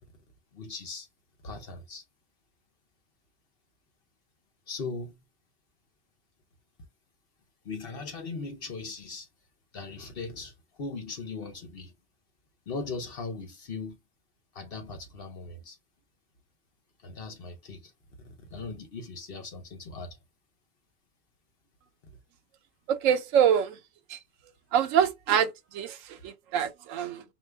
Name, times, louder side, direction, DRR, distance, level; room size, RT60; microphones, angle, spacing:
voice 1, 0.5-1.1 1.4-2.0 4.7-5.2 7.6-9.3 9.7-11.9 12.7-14.0 14.5-15.8 17.0-17.9 18.2-20.2 22.1-22.2, left 3 dB, 50° left, 0.9 m, -39 dB
voice 2, 22.9-23.8 24.1-24.2 24.7-27.2, right 8 dB, 75° right, 0.9 m, -25 dB
4.4 x 2.5 x 3.3 m
omnidirectional pair, 1.4 m